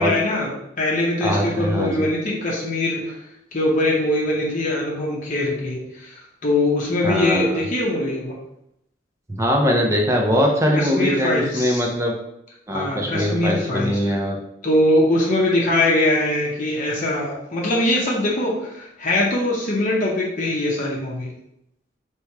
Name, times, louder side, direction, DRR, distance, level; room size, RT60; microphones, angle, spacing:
voice 1, 0.0-3.1 3.5-8.3 10.7-11.8 12.7-14.0 14.6-21.3, left 1 dB, 40° left, -4 dB, 0.8 m, -22 dB
voice 2, 1.2-2.1 7.0-7.6 9.3-12.1 12.7-14.4, equal, 15° right, 1 dB, 0.6 m, -21 dB
3.4 x 3.0 x 4.6 m, 0.78 s
head